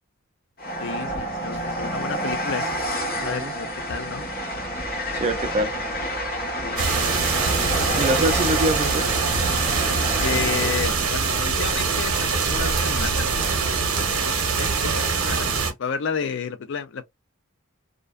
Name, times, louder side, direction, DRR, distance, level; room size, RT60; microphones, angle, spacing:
Train, 0.6-11.1, equal, 45° left, 1.0 m, -29 dB
voice 1, 0.8-2.9 3.2-4.3 6.6-7.0 10.2-13.3 13.9-17.0, left 6 dB, 60° left, 0.4 m, -31 dB
voice 2, 3.2-3.5 5.1-5.7 8.0-9.1, right 1 dB, 30° right, 0.4 m, -24 dB
sound 1, 6.8-15.7, right 5 dB, 75° right, 0.8 m, -23 dB
2.5 x 2.2 x 2.3 m
head